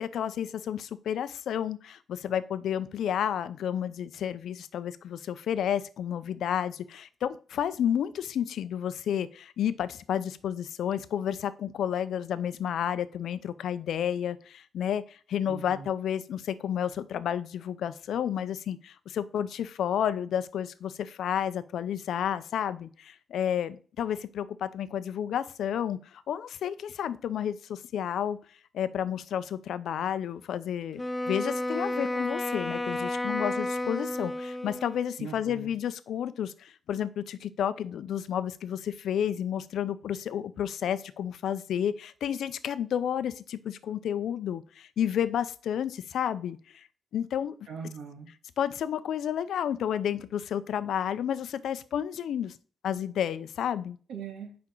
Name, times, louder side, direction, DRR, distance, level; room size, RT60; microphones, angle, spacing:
voice 1, 0.0-15.0 15.3-26.0 26.3-28.4 28.7-31.0 31.3-46.6 47.1-47.5 48.6-52.6 52.8-54.0, left 9 dB, 75° left, 14 dB, 0.5 m, -31 dB
voice 2, 15.5-15.9 35.2-35.7 47.7-48.3 54.1-54.6, right 6 dB, 90° right, 4 dB, 1.8 m, -41 dB
Wind instrument woodwind instrument, 31.0-35.1, left 1 dB, 10° left, 0.4 m, -32 dB
6.0 x 5.2 x 4.5 m, 0.40 s
wide cardioid pair, 155°, 0 cm